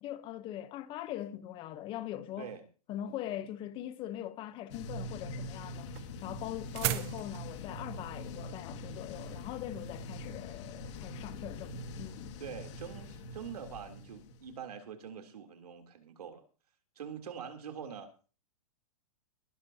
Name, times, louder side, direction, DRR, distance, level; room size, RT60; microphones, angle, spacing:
voice 1, 0.0-2.5 2.9-5.9 6.2-12.4, left 12 dB, 25° left, 0.9 m, -41 dB
sound 1, 4.7-14.6, left 2 dB, 50° left, 2.0 m, -43 dB
sound 2, 5.1-10.3, right 15 dB, 45° right, 1.0 m, -39 dB
voice 2, 12.4-16.4 16.9-18.1, right 7 dB, 80° right, 3.2 m, -44 dB
21.5 x 12.0 x 2.8 m
hypercardioid pair, 145°, 19 cm